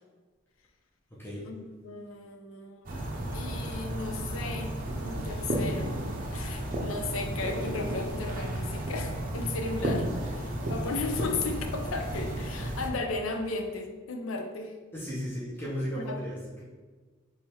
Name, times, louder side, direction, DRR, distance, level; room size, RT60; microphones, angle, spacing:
voice 1, 1.4-3.0 3.3-4.7 5.0-6.0 6.3-14.7 15.9-16.2, left 3 dB, 80° left, 4 dB, 0.5 m, -35 dB
sound 1, 2.9-12.9, right 1 dB, 40° right, 0.6 m, -33 dB
voice 2, 14.9-16.6, equal, 10° left, -7 dB, 0.8 m, -35 dB
3.5 x 3.2 x 4.4 m, 1.4 s
head